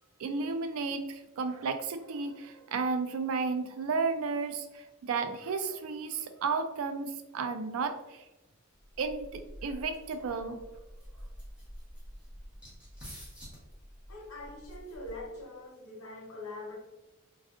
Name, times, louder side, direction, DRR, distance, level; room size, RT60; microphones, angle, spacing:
voice 1, 0.2-8.2 9.0-10.6, right 4 dB, 75° right, 8 dB, 0.3 m, -33 dB
sound 1, 8.8-15.5, equal, 5° right, 1.0 m, -48 dB
voice 2, 14.1-16.8, left 2 dB, 90° left, 0 dB, 0.8 m, -43 dB
3.5 x 2.4 x 2.4 m, 1.0 s
head